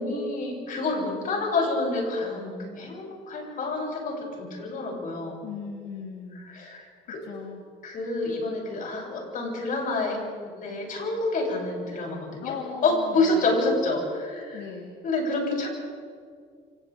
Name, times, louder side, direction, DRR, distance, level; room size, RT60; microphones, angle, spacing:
voice 1, 0.0-5.4 6.5-7.2 7.8-12.5 12.8-14.6 15.0-15.7, left 2 dB, 55° left, -2 dB, 7.6 m, -28 dB
voice 2, 5.4-6.5 7.2-7.6 12.4-13.6 14.5-15.0, left 6 dB, 85° left, 0 dB, 2.2 m, -38 dB
29.0 x 26.5 x 3.6 m, 2.2 s
cardioid pair, 110°, 17 cm